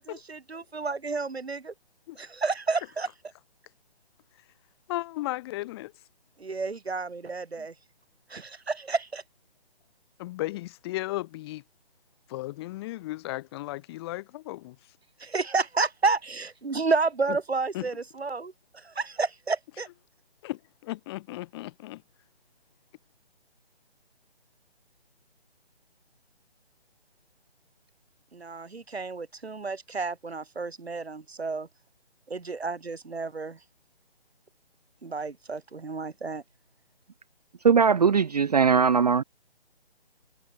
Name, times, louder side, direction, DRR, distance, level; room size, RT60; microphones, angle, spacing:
voice 1, 0.0-1.7 2.2-3.1 6.4-7.7 8.3-9.2 15.2-18.5 19.0-19.9 28.3-31.7 32.3-33.6 35.0-36.4, right 4 dB, 75° right, 4.5 m, -30 dB
voice 2, 4.9-5.9 10.2-11.6 12.3-14.7 17.3-17.4 17.7-17.9 20.4-22.0, left 18 dB, 25° left, 6.8 m, -35 dB
voice 3, 37.6-39.2, right 6 dB, 40° right, 0.6 m, -20 dB
figure-of-eight pair, 155°, 32 cm